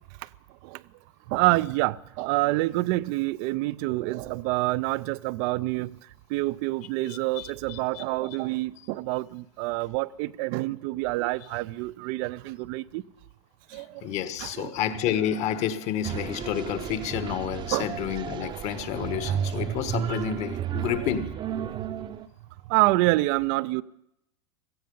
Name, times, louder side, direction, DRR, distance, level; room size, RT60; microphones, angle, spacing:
voice 1, 1.3-5.9 6.3-13.0 13.7-13.9 14.4-14.7 17.7-17.9 18.4-19.4 22.7-23.8, right 20 dB, 55° right, 0.5 m, -27 dB
voice 2, 14.0-21.3, left 9 dB, 50° left, 1.5 m, -29 dB
sound 1, 16.0-22.3, right 9 dB, 30° right, 0.8 m, -33 dB
17.5 x 15.0 x 5.5 m
hypercardioid pair, 95°, 15 cm